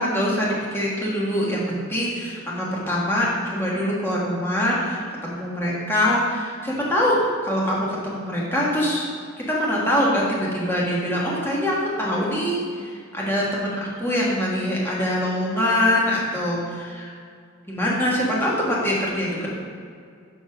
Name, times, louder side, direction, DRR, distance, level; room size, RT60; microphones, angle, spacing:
voice 1, 0.0-9.1 9.4-17.1 17.7-19.5, left 1 dB, 10° left, -5 dB, 1.4 m, -24 dB
6.3 x 5.7 x 5.7 m, 2.2 s
head